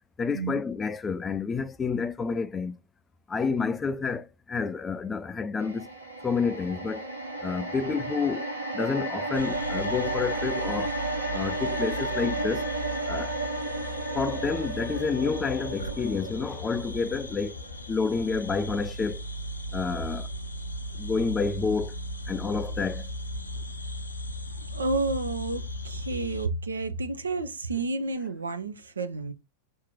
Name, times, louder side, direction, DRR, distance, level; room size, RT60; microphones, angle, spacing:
voice 1, 0.2-2.8 3.3-5.9 6.2-7.1 7.4-8.4 8.7-11.0 11.3-12.7 13.1-13.3 14.1-17.5 17.9-19.2 19.7-20.3 21.0-22.0 22.3-23.1, left 5 dB, 15° left, 0.4 m, -29 dB
sound 1, 5.6-19.9 20.3-20.4, right 2 dB, 90° right, 1.4 m, -33 dB
sound 2, 9.3-26.5, equal, 80° left, 0.6 m, -37 dB
voice 2, 24.7-29.3, right 3 dB, 75° right, 0.7 m, -30 dB
4.6 x 3.0 x 3.6 m
figure-of-eight pair, 90°, 0 cm